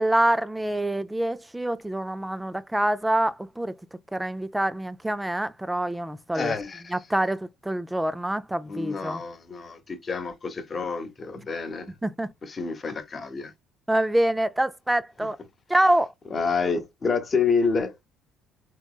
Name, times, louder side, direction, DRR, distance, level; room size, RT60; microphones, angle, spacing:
voice 1, 0.0-3.8 4.1-6.5 6.9-9.2 12.0-12.3 13.9-15.4 15.7-16.1, right 1 dB, 10° right, 0.4 m, -26 dB
voice 2, 6.3-7.0 8.7-12.0 12.4-13.5 15.2-15.3 16.3-18.0, left 5 dB, 35° left, 0.9 m, -28 dB
3.3 x 3.0 x 2.3 m
hypercardioid pair, 65°, 0 cm